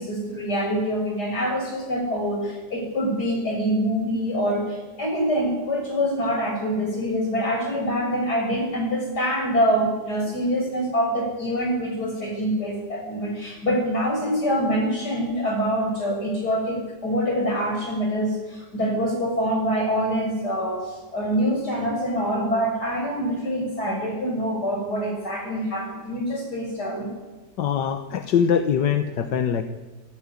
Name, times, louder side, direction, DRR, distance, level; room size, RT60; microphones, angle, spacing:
voice 1, 0.0-27.1, equal, 65° left, 2 dB, 7.3 m, -25 dB
voice 2, 27.6-29.6, left 8 dB, 85° left, 8 dB, 1.8 m, -22 dB
26.5 x 14.5 x 9.8 m, 1.3 s
omnidirectional pair, 1.8 m